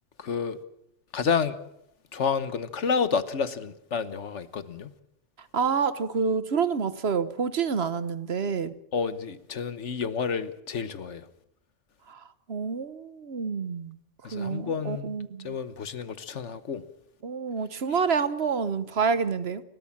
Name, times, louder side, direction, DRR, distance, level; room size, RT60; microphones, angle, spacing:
voice 1, 0.2-0.6 1.1-1.6 2.1-4.9 8.9-11.3 14.2-15.1 15.4-16.8, left 6 dB, 70° left, 1.4 m, -29 dB
voice 2, 5.5-8.7 12.1-12.2 12.5-14.0 14.3-15.6 17.2-19.6, right 5 dB, 60° right, 1.2 m, -28 dB
30.0 x 13.0 x 7.3 m
omnidirectional pair, 1.3 m